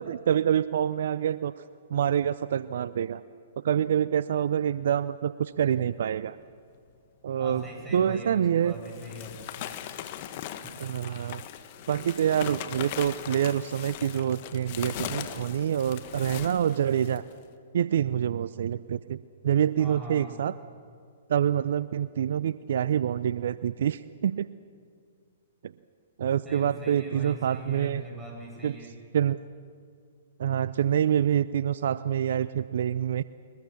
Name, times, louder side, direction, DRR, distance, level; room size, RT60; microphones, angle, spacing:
voice 1, 0.0-1.5 1.9-3.2 3.6-6.4 7.2-7.6 7.9-8.7 10.8-11.4 11.9-17.2 17.7-20.5 21.3-24.5 25.6-25.7 26.2-28.0 28.6-28.8 29.1-29.4 30.4-33.2, right 9 dB, 65° right, 16 dB, 0.5 m, -26 dB
voice 2, 7.4-9.6 19.8-20.4 26.4-29.0, equal, 5° right, -2 dB, 7.9 m, -41 dB
sound 1, 7.9-8.0 8.6-17.3, left 11 dB, 45° left, 1.5 m, -39 dB
22.5 x 21.0 x 7.2 m, 2.2 s
hypercardioid pair, 125°, 0 cm